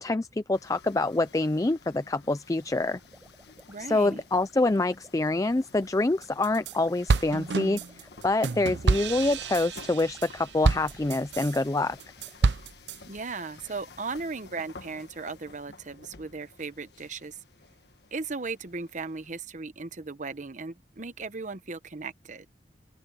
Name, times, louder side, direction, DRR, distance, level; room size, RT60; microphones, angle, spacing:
voice 1, 0.0-3.0 3.8-12.0, left 2 dB, 20° left, 0.4 m, -26 dB
sound 1, 0.5-19.3, left 4 dB, 70° left, 1.5 m, -52 dB
sound 2, 2.6-12.6, right 1 dB, 10° right, 7.7 m, -57 dB
voice 2, 3.7-4.2 13.1-17.4 18.1-22.5, right 4 dB, 45° right, 1.0 m, -37 dB
sound 3, 6.2-6.7 7.1-11.6 12.0-13.0, right 3 dB, 85° right, 0.7 m, -28 dB
open air
head